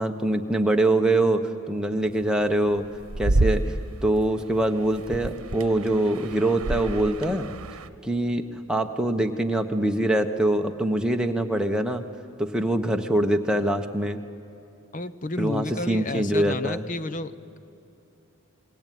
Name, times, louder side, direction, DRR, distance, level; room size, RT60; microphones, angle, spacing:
voice 1, 0.0-2.9 3.2-7.5 8.0-12.0 12.4-14.2 15.4-16.8, right 1 dB, 5° right, 3 dB, 1.2 m, -24 dB
sound 1, 2.0-4.1 4.9-7.9, right 2 dB, 70° right, 1.1 m, -28 dB
voice 2, 14.9-17.3, left 2 dB, 35° left, 14 dB, 0.7 m, -31 dB
28.5 x 21.5 x 9.4 m, 2.8 s
head